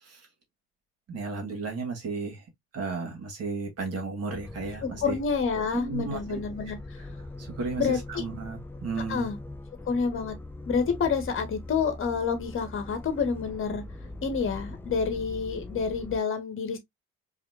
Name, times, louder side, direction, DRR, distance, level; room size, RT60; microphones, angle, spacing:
voice 1, 1.1-2.4 2.7-5.2 5.7-6.4 7.4-9.3, right 4 dB, 40° right, 2.1 m, -34 dB
sound 1, 4.3-16.2, left 2 dB, 5° left, 0.5 m, -42 dB
voice 2, 4.8-6.8 7.8-8.2 9.1-9.4 9.9-10.3 10.6-13.8 14.2-16.8, left 5 dB, 35° left, 1.4 m, -28 dB
4.9 x 2.9 x 2.6 m
figure-of-eight pair, 50°, 38 cm